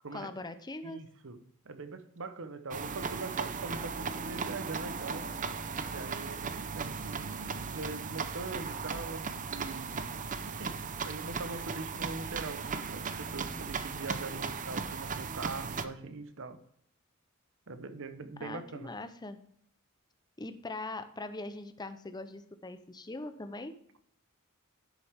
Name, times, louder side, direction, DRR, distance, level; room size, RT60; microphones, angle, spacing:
voice 1, 0.1-1.0 18.4-19.4 20.4-23.7, left 2 dB, 20° left, 0.7 m, -41 dB
voice 2, 0.8-5.3 5.9-16.6 17.7-19.0, right 3 dB, 65° right, 0.9 m, -42 dB
sound 1, 2.7-15.9, right 5 dB, 40° right, 0.6 m, -37 dB
11.5 x 6.8 x 3.5 m
head